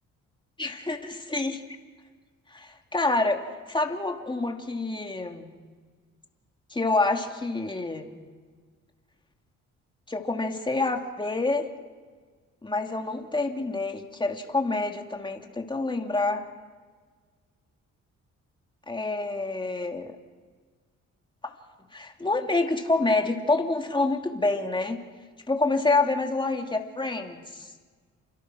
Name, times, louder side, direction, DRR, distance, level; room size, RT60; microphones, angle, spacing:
voice 1, 0.6-1.6 2.5-3.4 3.7-5.5 6.7-8.1 10.1-11.7 12.6-16.4 18.9-20.1 21.9-25.0 25.5-27.7, left 3 dB, 15° left, 3 dB, 2.8 m, -27 dB
28.5 x 25.5 x 6.4 m, 1.5 s
cardioid pair, 90°, 30 cm